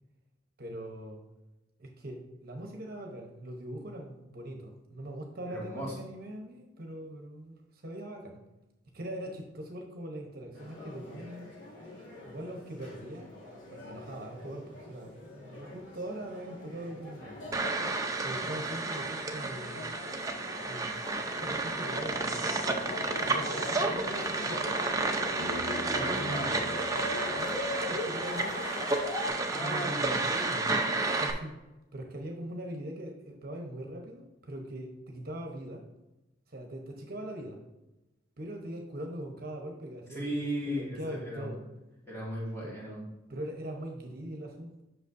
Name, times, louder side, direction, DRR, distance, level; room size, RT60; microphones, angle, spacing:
voice 1, 0.6-1.2 1.8-8.4 8.9-11.5 12.2-13.3 13.7-17.6 18.2-19.8 20.7-20.9 21.3-22.7 23.3-24.7 26.2-26.5 27.3-28.9 29.6-30.0 31.2-31.6 31.9-35.9 36.5-37.6 38.4-40.3 40.7-41.6 42.6-42.7 43.3-44.8, right 1 dB, 50° right, 2 dB, 0.9 m, -41 dB
voice 2, 5.5-6.0 25.9-26.7 29.5-30.9 40.1-41.5 42.1-43.0, equal, 15° left, -5 dB, 2.1 m, -36 dB
sound 1, 10.5-29.3, left 2 dB, 85° left, 2.4 m, -41 dB
sound 2, 17.5-31.3, right 3 dB, 20° right, 0.6 m, -31 dB
Piano, 25.4-29.1, equal, 80° right, 0.7 m, -47 dB
8.0 x 6.1 x 2.6 m, 0.99 s
head